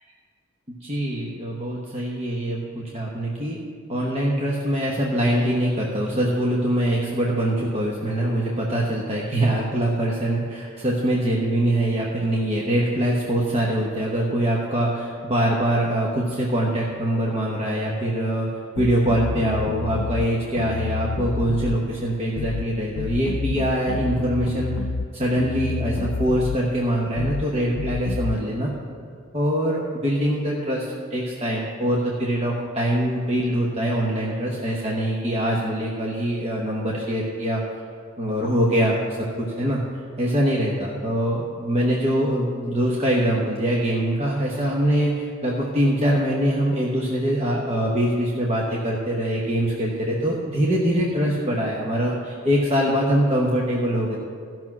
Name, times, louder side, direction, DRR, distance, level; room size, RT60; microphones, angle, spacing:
voice 1, 0.7-3.6 3.9-18.5 18.7-24.7 25.1-28.7 29.3-37.6 38.2-39.0 39.4-39.8 40.2-54.2, right 1 dB, 30° right, -4 dB, 1.1 m, -23 dB
sound 1, 18.8-20.3 20.6-21.8 22.4-22.7 23.0-25.1 25.4-26.6 27.2-27.5 27.8-28.4, left 4 dB, 80° left, 0.4 m, -29 dB
14.5 x 6.1 x 6.1 m, 2.3 s
head